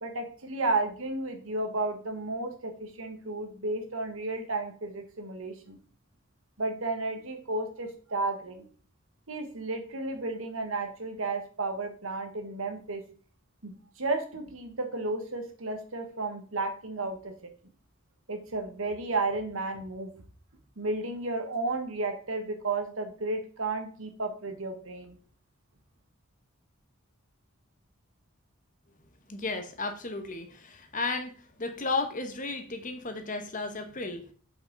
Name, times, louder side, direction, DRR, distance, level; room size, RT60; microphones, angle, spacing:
voice 1, 0.0-5.8 6.6-8.7 9.3-13.0 13.6-17.3 18.3-20.1 20.8-25.2, right 2 dB, 75° right, 5 dB, 1.5 m, -33 dB
voice 2, 29.3-34.2, left 3 dB, 40° left, 6 dB, 1.1 m, -34 dB
7.7 x 5.7 x 4.0 m, 0.42 s
head